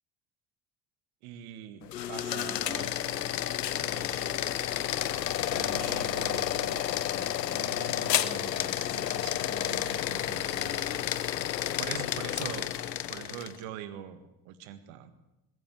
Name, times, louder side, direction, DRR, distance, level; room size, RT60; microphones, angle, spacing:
voice 1, 1.2-3.5 3.8-4.5 5.5-11.0 11.8-12.7 13.1-15.1, right 9 dB, 70° right, 11 dB, 2.0 m, -44 dB
sound 1, 1.8-13.6, left 11 dB, 90° left, 0.8 m, -31 dB
20.5 x 16.5 x 9.2 m, 0.95 s
hypercardioid pair, 50°, 48 cm